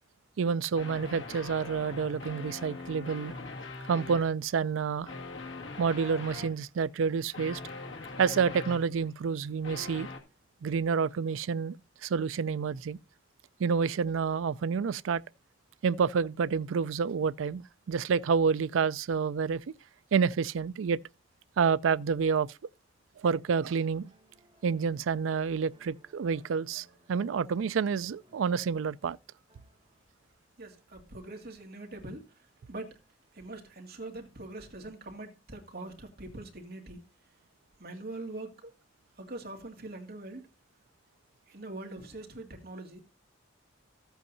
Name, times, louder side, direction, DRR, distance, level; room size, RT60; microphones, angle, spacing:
voice 1, 0.4-3.3 3.9-5.1 5.8-7.6 8.2-10.1 10.6-11.8 12.0-13.0 13.6-15.2 15.8-19.6 20.1-21.0 21.6-22.5 23.2-24.1 24.6-29.2, right 6 dB, 90° right, 0.4 m, -28 dB
sound 1, 0.7-4.3 5.1-6.6 7.3-9.1 9.6-10.2, left 3 dB, 75° left, 2.0 m, -42 dB
sound 2, 23.8-30.2 31.7-31.8, equal, 25° right, 4.2 m, -63 dB
voice 2, 30.6-33.0 33.3-37.0 37.8-38.7 39.2-40.5 41.5-43.0, right 2 dB, 50° right, 2.1 m, -43 dB
14.5 x 8.1 x 2.7 m
head